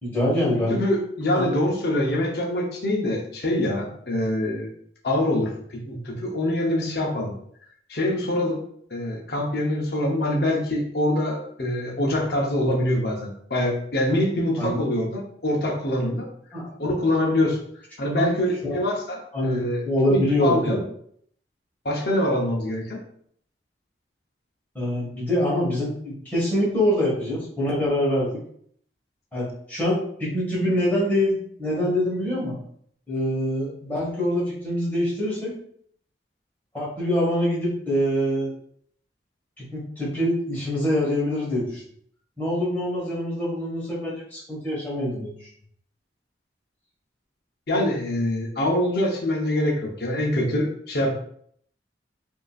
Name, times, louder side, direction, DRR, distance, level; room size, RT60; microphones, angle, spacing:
voice 1, 0.0-0.8 1.3-1.6 14.6-14.8 16.5-16.7 18.1-18.3 18.6-18.8 19.3-20.8 24.7-28.4 29.3-32.5 33.1-35.5 36.7-38.5 39.6-41.8 42.4-45.5, left 1 dB, 10° left, -7 dB, 1.6 m, -25 dB
voice 2, 0.7-4.7 5.0-7.3 7.9-8.6 8.9-16.3 16.8-17.6 18.0-19.8 20.1-20.8 21.8-23.0 47.7-51.1, left 1 dB, 60° left, -1 dB, 0.8 m, -24 dB
5.1 x 2.8 x 2.4 m, 0.65 s
head